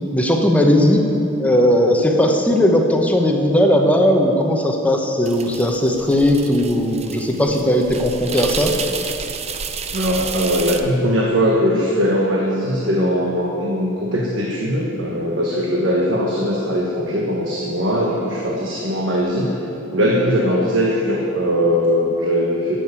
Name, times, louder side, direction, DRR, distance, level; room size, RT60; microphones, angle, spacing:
voice 1, 0.1-1.0 1.4-8.7, equal, 5° left, 2 dB, 1.0 m, -17 dB
sound 1, 5.3-10.8, right 6 dB, 35° right, 0.6 m, -30 dB
voice 2, 9.9-19.6 19.9-22.8, equal, 75° right, -3 dB, 1.4 m, -20 dB
11.5 x 7.6 x 8.4 m, 2.9 s
head